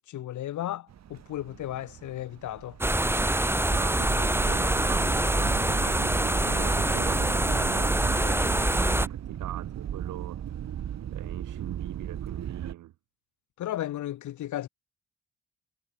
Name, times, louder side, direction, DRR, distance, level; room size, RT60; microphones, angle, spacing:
voice 1, 0.1-2.8 13.6-14.7, left 13 dB, 75° left, 1.9 m, -34 dB
sound 1, 0.9-12.7, right 10 dB, 60° right, 2.4 m, -37 dB
sound 2, 2.8-9.1, right 1 dB, 10° right, 1.9 m, -25 dB
voice 2, 3.7-12.9, right 14 dB, 80° right, 3.9 m, -41 dB
cardioid pair, 90°, 30 cm